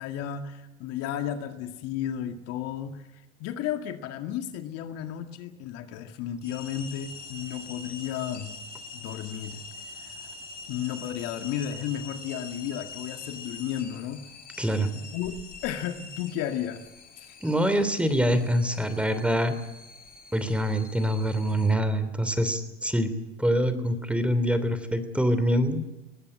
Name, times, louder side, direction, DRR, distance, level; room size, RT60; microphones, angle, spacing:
voice 1, 0.0-3.1 3.4-8.6 8.9-9.6 10.0-10.3 10.7-14.3 14.9-16.8 17.2-17.3, left 10 dB, 55° left, 6 dB, 2.0 m, -33 dB
sound 1, 6.4-21.7, left 3 dB, 30° left, 3.5 m, -44 dB
voice 2, 14.6-14.9 17.4-19.6 20.3-23.1 23.4-25.8, equal, 5° right, 11 dB, 3.1 m, -25 dB
20.5 x 16.5 x 9.8 m, 0.99 s
hypercardioid pair, 85°, 29 cm